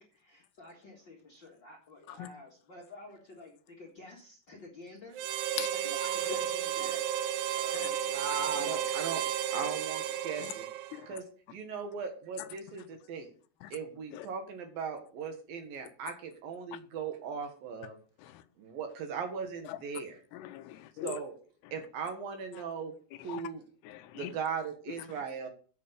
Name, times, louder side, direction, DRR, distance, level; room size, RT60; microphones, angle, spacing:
voice 1, 0.0-5.4 5.7-7.0 7.5-8.1 8.5-8.6, left 2 dB, 45° left, 1.5 m, -51 dB
Harmonica, 5.1-11.1, right 10 dB, 80° right, 2.1 m, -33 dB
voice 2, 8.1-9.2 9.5-10.7 11.1-11.2 11.5-13.3 13.7-18.0 18.6-20.2 21.0-21.3 21.7-22.9 23.2-23.6 24.1-25.5, right 6 dB, 65° right, 2.9 m, -38 dB
voice 3, 20.3-21.2 23.3-23.4 23.8-24.3, left 13 dB, 80° left, 2.6 m, -41 dB
8.6 x 7.5 x 6.7 m
omnidirectional pair, 4.8 m